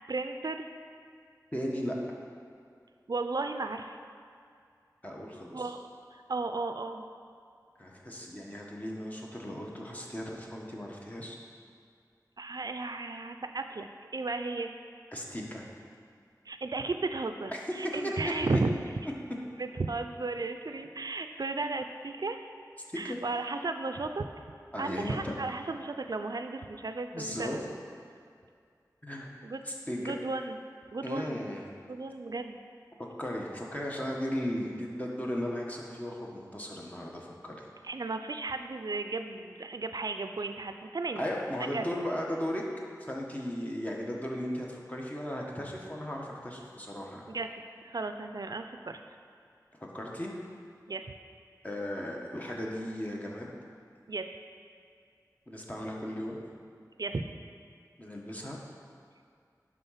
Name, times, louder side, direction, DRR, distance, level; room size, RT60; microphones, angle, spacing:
voice 1, 0.1-0.7 3.1-4.0 5.5-5.8 6.1-7.1 12.4-14.7 16.5-18.8 19.6-22.5 23.0-24.3 24.8-27.8 29.4-29.6 30.0-30.6 30.9-31.4 31.9-32.6 37.8-41.2 41.6-41.8 47.3-47.5 47.8-49.0 50.9-51.1 54.1-54.3 57.0-57.3, right 3 dB, 65° right, 7 dB, 0.4 m, -34 dB
voice 2, 1.5-1.9 5.0-5.7 7.8-11.4 15.1-15.6 17.5-18.1 18.5-18.6 22.9-23.2 24.7-25.3 27.1-27.6 29.0-29.3 29.6-30.1 31.0-31.6 33.2-37.5 41.1-42.6 43.0-47.2 49.9-50.3 51.6-53.5 55.5-56.4 58.0-58.6, equal, 20° left, -2 dB, 1.3 m, -36 dB
11.0 x 3.7 x 5.8 m, 2.3 s
wide cardioid pair, 50°, 7 cm